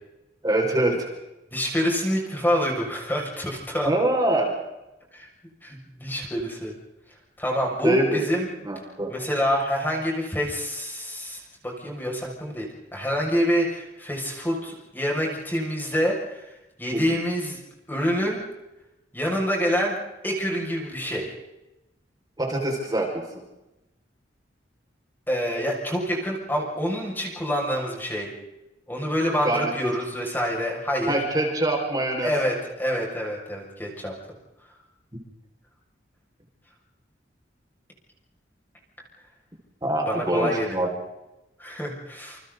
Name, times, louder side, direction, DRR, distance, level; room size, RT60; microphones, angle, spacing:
voice 1, 0.4-1.0 3.8-4.5 7.8-8.2 8.6-9.1 16.9-17.0 22.4-23.1 29.4-29.7 31.1-32.3 39.8-40.9, right 1 dB, 20° right, -1 dB, 5.8 m, -24 dB
voice 2, 1.5-3.9 5.1-5.3 5.6-6.7 7.4-8.5 9.1-12.7 12.9-16.5 16.8-17.6 17.9-18.4 19.1-20.0 20.2-21.3 25.3-28.3 28.9-31.2 32.2-34.1 40.1-40.9 41.6-42.4, equal, 10° left, -1 dB, 6.7 m, -27 dB
29.5 x 29.0 x 4.1 m, 0.95 s
head